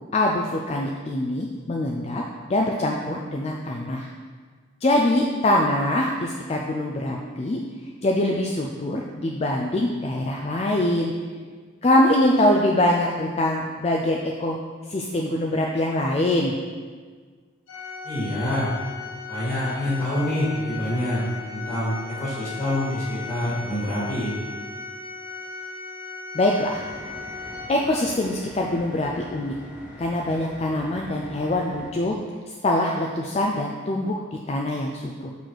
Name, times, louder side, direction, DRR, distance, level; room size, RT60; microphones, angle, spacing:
voice 1, 0.1-2.2 2.5-4.1 4.8-7.6 8.0-11.1 11.8-14.6 14.9-16.5 26.3-26.8 27.7-29.5 30.0-32.2 32.6-35.3, left 1 dB, 30° left, -1 dB, 0.3 m, -23 dB
Organ, 17.7-28.3, left 4 dB, 90° left, 1.0 m, -37 dB
voice 2, 18.0-18.7 19.3-21.2 21.5-24.3, left 1 dB, 15° left, -10 dB, 1.7 m, -26 dB
sound 1, 26.7-31.9, equal, 5° right, 1.1 m, -43 dB
6.5 x 4.1 x 4.5 m, 1.5 s
head